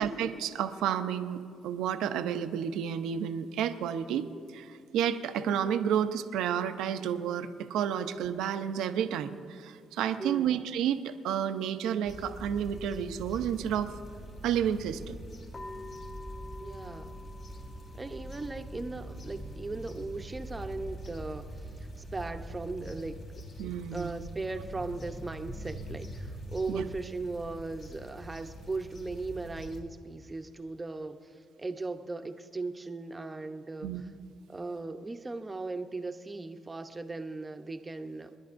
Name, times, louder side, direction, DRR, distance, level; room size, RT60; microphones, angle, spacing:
voice 1, 0.0-13.9 14.4-15.2 23.6-24.2 26.7-26.9 33.8-34.0, right 9 dB, 90° right, 9 dB, 0.6 m, -31 dB
voice 2, 10.2-10.5 16.6-17.2 18.0-23.2 23.9-33.9 34.5-38.3, right 3 dB, 20° right, 7 dB, 0.8 m, -38 dB
sound 1, 12.0-29.8, equal, 60° left, 2.8 m, -44 dB
sound 2, 15.5-22.5, left 2 dB, 30° left, 1.3 m, -50 dB
30.0 x 10.5 x 2.6 m, 2.2 s
cardioid pair, 90°, 0 cm